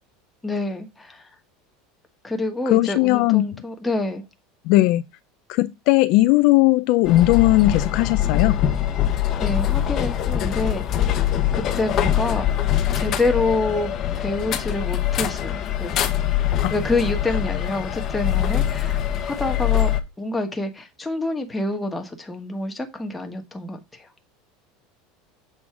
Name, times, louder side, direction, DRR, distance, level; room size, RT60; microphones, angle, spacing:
voice 1, 0.4-1.2 2.2-4.2 9.4-11.2 11.5-12.4 12.9-16.2 16.7-24.1, left 2 dB, 10° left, 1.3 m, -27 dB
voice 2, 2.7-3.5 4.7-5.0 5.5-8.6 16.6-16.7, left 17 dB, 55° left, 0.4 m, -18 dB
sound 1, 7.0-20.0, left 11 dB, 35° left, 1.0 m, -23 dB
7.5 x 3.9 x 4.7 m
supercardioid pair, 155°, 0 cm